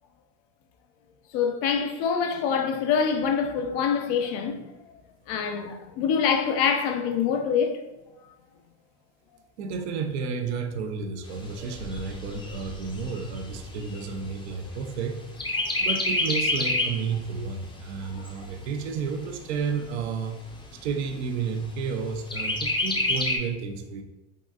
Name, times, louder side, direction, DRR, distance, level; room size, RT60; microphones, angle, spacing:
voice 1, 1.3-4.7 5.3-7.8, left 6 dB, 65° left, 0.6 m, -25 dB
voice 2, 9.6-15.2 15.8-20.4 20.7-24.0, right 5 dB, 80° right, 0.5 m, -31 dB
Chirp tweet, 11.3-15.0 15.4-17.1 17.5-17.6 17.9-18.9 19.5-19.6 20.0-20.1 20.5-21.0 22.3-23.4, left 2 dB, 15° left, 0.5 m, -28 dB
3.7 x 2.3 x 2.4 m
hypercardioid pair, 85°, 33 cm